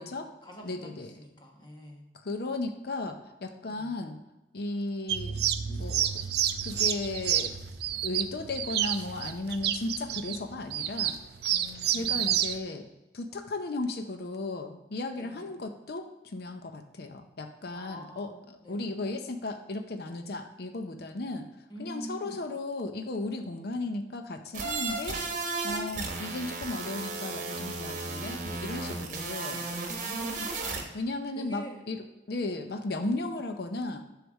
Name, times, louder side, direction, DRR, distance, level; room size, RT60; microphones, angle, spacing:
voice 1, 0.0-2.0 3.7-4.0 11.5-12.3 15.1-15.6 17.7-18.9 21.7-22.4 29.8-30.8 31.3-31.8 33.0-33.3, equal, 25° left, 0 dB, 1.3 m, -46 dB
voice 2, 0.6-1.1 2.1-4.2 4.5-5.4 5.7-6.1 6.6-7.6 8.0-11.1 11.9-12.9 13.1-18.3 18.7-21.5 21.8-25.2 25.6-29.6 30.4-30.5 30.9-32.0 32.3-34.0, left 2 dB, 60° left, 6 dB, 0.6 m, -35 dB
sound 1, 5.1-12.6, right 10 dB, 65° right, 0.4 m, -30 dB
sound 2, 24.5-30.8, right 3 dB, 45° right, 1.2 m, -34 dB
7.9 x 3.3 x 6.4 m, 1.0 s
head